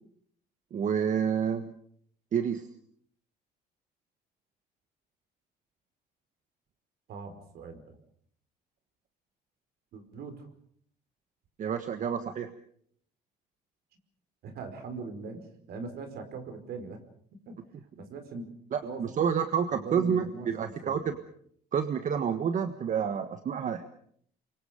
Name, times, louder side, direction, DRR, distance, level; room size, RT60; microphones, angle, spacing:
voice 1, 0.7-1.7 2.3-2.7 11.6-12.5 18.7-21.2 21.7-23.9, right 7 dB, 50° right, 9 dB, 1.5 m, -29 dB
voice 2, 7.1-7.9 9.9-10.5 14.4-17.0 17.5-17.6 18.0-18.5 18.8-19.1 19.7-21.2, right 4 dB, 70° right, 7 dB, 5.0 m, -41 dB
28.5 x 24.0 x 5.3 m, 0.62 s
cardioid pair, 110°, 17 cm